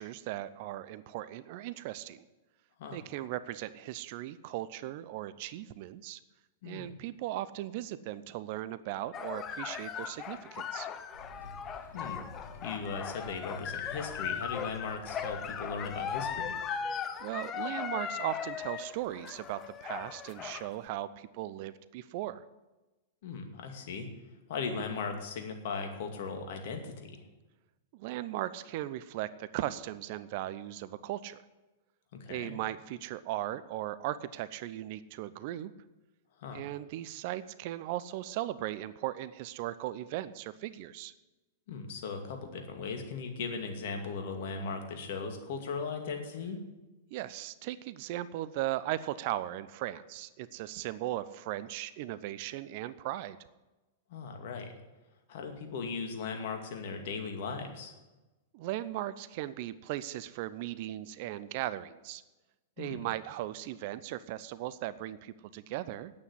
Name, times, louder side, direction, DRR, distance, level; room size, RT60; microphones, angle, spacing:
voice 1, 0.0-2.3 2.9-6.2 6.6-10.9 17.2-22.4 27.9-31.4 32.3-35.7 36.5-41.1 47.1-53.4 58.5-62.2 62.8-66.1, right 14 dB, 55° right, 15 dB, 0.7 m, -37 dB
sound 1, 9.1-20.8, left 7 dB, 30° left, 1.0 m, -38 dB
sound 2, 11.1-16.4, left 1 dB, 90° left, 4.2 m, -50 dB
voice 2, 12.6-16.6 23.2-24.1 24.5-27.2 32.2-32.5 36.4-36.6 41.7-46.6 54.1-54.7 55.3-57.9 62.8-63.0, left 5 dB, 60° left, 4 dB, 2.4 m, -38 dB
9.7 x 8.6 x 9.6 m, 1.1 s
hypercardioid pair, 105°, 0 cm